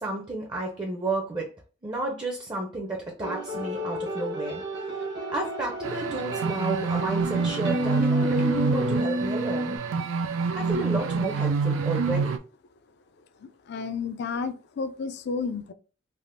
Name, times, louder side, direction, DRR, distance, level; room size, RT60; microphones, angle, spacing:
voice 1, 0.0-1.5 1.8-4.6 5.3-9.7 10.5-12.4, right 2 dB, 20° right, 0 dB, 0.5 m, -32 dB
sound 1, 3.2-9.8, equal, 60° right, 1.0 m, -30 dB
sound 2, 5.8-12.4, right 5 dB, 80° right, 0.3 m, -27 dB
voice 2, 13.4-15.7, left 5 dB, 55° left, 11 dB, 0.4 m, -32 dB
3.4 x 2.4 x 2.5 m, 0.36 s
head